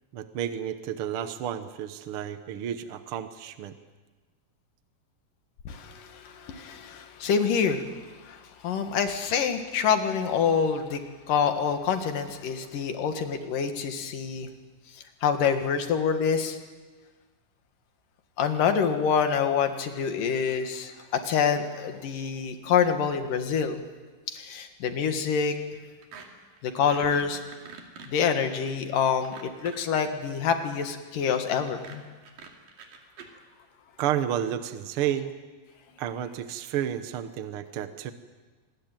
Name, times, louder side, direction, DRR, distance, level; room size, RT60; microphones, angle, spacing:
voice 1, 0.1-3.7 34.0-35.3 36.0-38.1, right 10 dB, 70° right, 10 dB, 1.3 m, -31 dB
voice 2, 5.7-7.9 8.2-11.0 11.3-14.5 15.2-16.6 18.4-23.8 24.3-25.6 26.6-27.4 28.1-32.0, left 6 dB, 75° left, 7 dB, 3.4 m, -26 dB
sound 1, 26.0-26.3 26.5-30.0 31.5-33.3, right 6 dB, 85° right, 4.3 m, -46 dB
25.5 x 20.0 x 9.1 m, 1.3 s
omnidirectional pair, 3.9 m